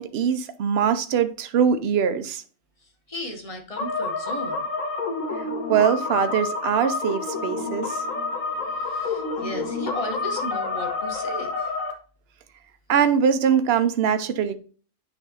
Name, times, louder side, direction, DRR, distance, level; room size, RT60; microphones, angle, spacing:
voice 1, 0.0-2.4 5.4-8.0 12.9-14.5, right 7 dB, 60° right, 0.8 m, -22 dB
voice 2, 2.8-4.7 8.5-11.7, left 1 dB, 25° left, 1.3 m, -35 dB
sound 1, 3.8-11.9, left 3 dB, 75° left, 1.5 m, -28 dB
9.9 x 3.5 x 2.9 m
omnidirectional pair, 1.4 m